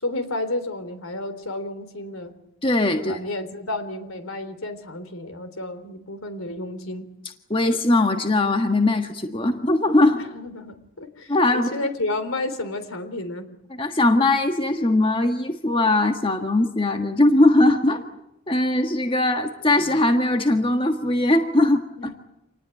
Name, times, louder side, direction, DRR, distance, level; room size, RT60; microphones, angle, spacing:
voice 1, 0.0-2.4 3.0-7.1 10.3-13.5 22.0-22.1, left 2 dB, 80° left, 10 dB, 3.6 m, -31 dB
voice 2, 2.6-3.2 7.5-10.2 11.3-11.7 13.8-18.0 18.5-21.8, left 2 dB, 25° left, 5 dB, 1.5 m, -20 dB
27.5 x 19.0 x 9.2 m, 0.85 s
head